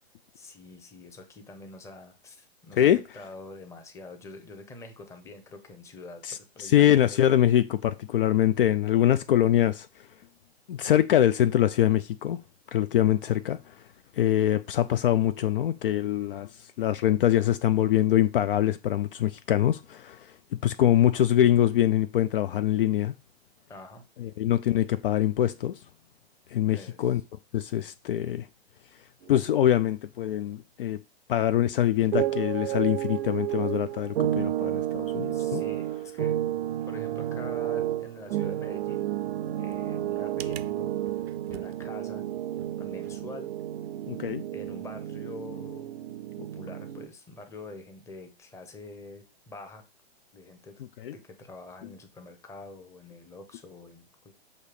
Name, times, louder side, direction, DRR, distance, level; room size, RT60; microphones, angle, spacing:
voice 1, 0.3-7.2 23.7-24.0 26.7-27.1 35.3-36.4 36.9-39.1 39.6-40.9 41.5-42.2 42.8-43.5 44.5-45.9 46.4-49.8 50.3-50.8 51.1-54.3, left 2 dB, 10° left, 0.8 m, -45 dB
voice 2, 6.2-9.9 10.7-12.4 12.7-13.7 14.2-16.5 16.8-20.3 20.6-23.1 24.2-25.7 26.5-27.2 27.5-28.5 29.3-31.0 31.3-35.6 44.1-44.4 51.0-51.1, left 11 dB, 60° left, 0.4 m, -24 dB
sound 1, 29.2-29.6 32.0-47.1, right 12 dB, 70° right, 0.6 m, -31 dB
6.6 x 2.8 x 5.0 m
hypercardioid pair, 135°, 32 cm